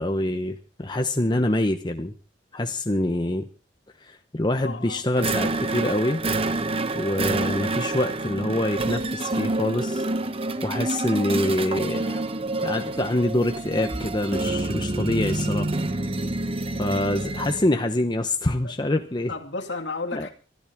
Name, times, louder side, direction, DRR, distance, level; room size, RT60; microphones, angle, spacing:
voice 1, 0.0-2.1 2.5-3.5 4.0-6.2 6.9-10.1 10.6-12.2 12.6-15.7 16.8-19.3 20.1-20.3, left 1 dB, 25° left, 6 dB, 1.0 m, -25 dB
voice 2, 4.6-5.0 18.6-18.7 19.3-20.3, left 3 dB, 75° left, 4 dB, 2.5 m, -32 dB
sound 1, 5.2-17.7, right 2 dB, 30° right, 1.0 m, -27 dB
25.0 x 13.5 x 3.6 m, 0.35 s
head